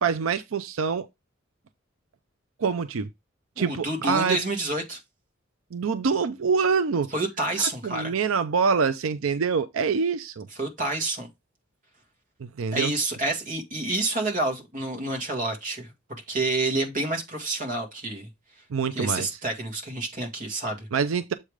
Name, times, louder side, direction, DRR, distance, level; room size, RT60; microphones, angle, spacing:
voice 1, 0.0-1.1 2.6-3.1 3.6-4.4 5.7-7.1 7.8-10.5 12.4-12.9 18.7-19.4 20.9-21.3, right 5 dB, 90° right, 0.5 m, -25 dB
voice 2, 3.6-5.0 7.1-8.1 10.6-11.3 12.7-18.3 18.9-20.9, right 2 dB, 40° right, 1.9 m, -28 dB
7.4 x 3.3 x 4.9 m
head